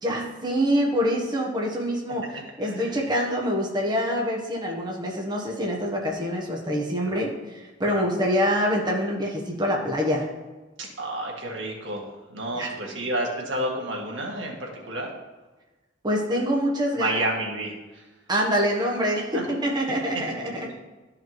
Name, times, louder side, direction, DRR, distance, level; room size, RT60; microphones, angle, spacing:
voice 1, 0.0-2.3 2.6-10.2 12.5-12.7 16.0-17.2 18.3-20.7, equal, 25° right, -2 dB, 1.1 m, -25 dB
voice 2, 2.6-2.9 7.0-7.2 7.9-8.0 10.8-12.0 12.3-15.1 17.0-18.0 19.3-19.4, right 1 dB, 80° right, -1 dB, 1.7 m, -30 dB
12.5 x 4.9 x 3.1 m, 1.2 s
head